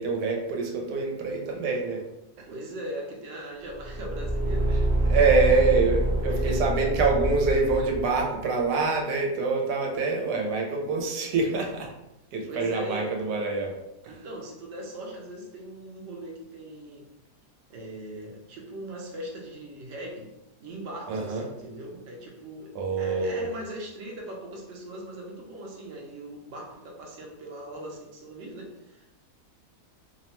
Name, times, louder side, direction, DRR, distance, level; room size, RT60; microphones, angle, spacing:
voice 1, 0.0-2.0 2.4-2.5 5.0-11.9 12.3-13.7 14.0-14.2 21.1-21.4 22.7-23.5, right 4 dB, 90° right, 1 dB, 1.2 m, -25 dB
voice 2, 2.5-4.7 5.2-5.5 6.3-6.7 12.5-13.1 14.1-17.1 17.7-20.3 20.6-29.1, right 1 dB, 60° right, -1 dB, 0.8 m, -39 dB
Car / Engine, 3.7-8.3, right 1 dB, 20° right, 0.6 m, -26 dB
2.8 x 2.1 x 2.9 m, 0.92 s
omnidirectional pair, 1.7 m